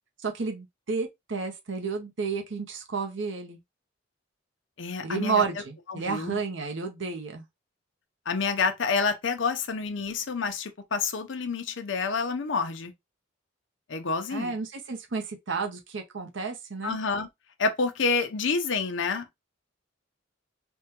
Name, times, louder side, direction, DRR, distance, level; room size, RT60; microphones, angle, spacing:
voice 1, 0.2-3.6 5.0-7.4 14.3-17.0, right 5 dB, 65° right, 0.7 m, -31 dB
voice 2, 4.8-5.4 5.9-6.4 8.3-12.9 13.9-14.5 16.8-17.3 17.6-19.4, left 4 dB, 65° left, 0.6 m, -28 dB
3.5 x 2.2 x 2.8 m
head